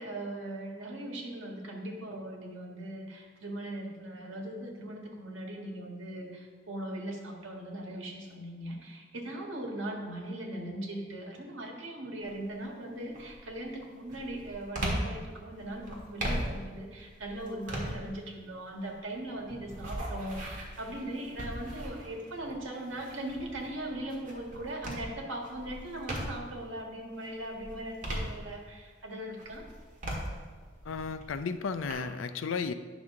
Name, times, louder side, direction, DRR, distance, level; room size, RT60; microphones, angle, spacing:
voice 1, 0.0-29.6, right 1 dB, 85° right, 0 dB, 1.6 m, -39 dB
sound 1, 12.2-12.6 13.1-26.6 27.1-28.9 29.3-31.9, right 1 dB, 40° right, 1.6 m, -39 dB
voice 2, 30.9-32.7, left 5 dB, 80° left, 11 dB, 0.5 m, -34 dB
9.7 x 6.1 x 3.6 m, 1.5 s
head